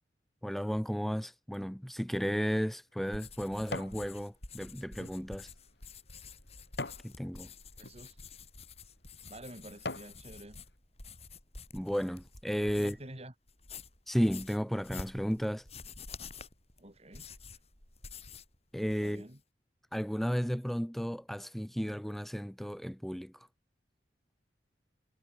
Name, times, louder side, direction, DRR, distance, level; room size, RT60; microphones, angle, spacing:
voice 1, 0.4-5.5 7.0-7.5 11.7-13.0 14.1-15.6 18.7-19.3 19.9-23.5, equal, ahead, 0.9 m, -33 dB
sound 1, 2.2-4.0 4.5-7.1 7.7-8.0 8.7-8.8 9.3-10.2 10.7-10.8, left 2 dB, 70° left, 4.0 m, -43 dB
sound 2, 3.1-13.1 13.5-18.6 18.8-19.4, left 4 dB, 35° left, 6.3 m, -49 dB
voice 2, 7.8-8.2 9.3-10.6 12.8-13.3 16.8-17.6 19.0-19.4, right 1 dB, 35° right, 4.3 m, -49 dB
head